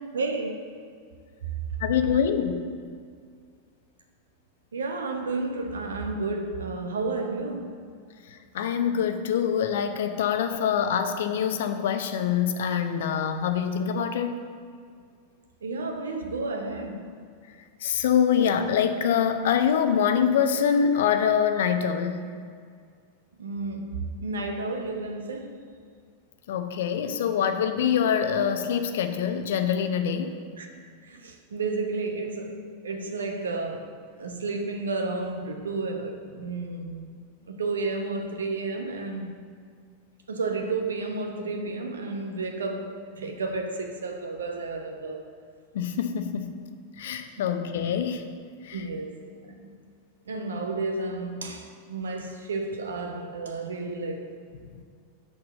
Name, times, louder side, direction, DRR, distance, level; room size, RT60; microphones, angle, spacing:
voice 1, 0.1-0.8 4.7-7.8 15.6-17.1 23.4-25.6 30.6-30.7 31.0-37.1 37.4-39.3 40.3-45.2 47.4-47.5 48.7-49.7 50.3-54.4, right 3 dB, 70° right, 4 dB, 1.0 m, -32 dB
voice 2, 1.8-2.7 8.5-14.4 17.8-22.3 26.5-30.4 45.7-46.5 47.0-48.2 48.7-48.8, left 8 dB, 55° left, 8 dB, 0.7 m, -25 dB
6.6 x 6.0 x 7.4 m, 2.1 s
figure-of-eight pair, 90°, 0 cm